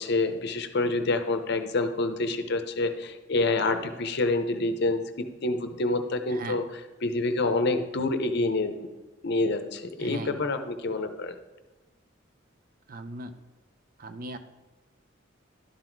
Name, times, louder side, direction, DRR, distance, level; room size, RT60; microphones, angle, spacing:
voice 1, 0.0-5.0 5.4-6.6 7.0-8.9 9.2-11.3, left 2 dB, 55° left, 8 dB, 0.7 m, -27 dB
voice 2, 6.3-6.6 10.0-10.4 12.9-13.3 14.0-14.4, right 2 dB, 45° right, 8 dB, 0.5 m, -38 dB
11.5 x 4.1 x 4.5 m, 1.2 s
head